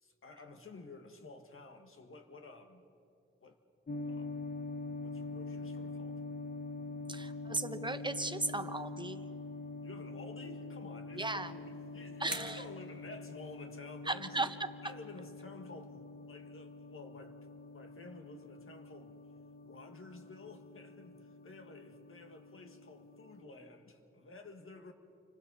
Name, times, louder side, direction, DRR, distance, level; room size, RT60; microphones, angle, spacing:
voice 1, 0.0-2.9 3.4-3.6 4.0-4.4 5.0-6.2 9.8-14.5 14.8-17.4 17.7-19.2 19.6-24.9, left 3 dB, 80° left, 5 dB, 1.8 m, -52 dB
sound 1, 3.9-23.4, left 3 dB, 45° left, 0.9 m, -45 dB
voice 2, 7.1-9.2 11.2-11.5 12.2-12.6 14.1-14.5, right 2 dB, 20° right, 9 dB, 1.0 m, -36 dB
sound 2, 11.2-13.9, right 1 dB, 5° right, 5.0 m, -49 dB
30.0 x 25.0 x 4.1 m, 2.5 s
wide cardioid pair, 70°, 21 cm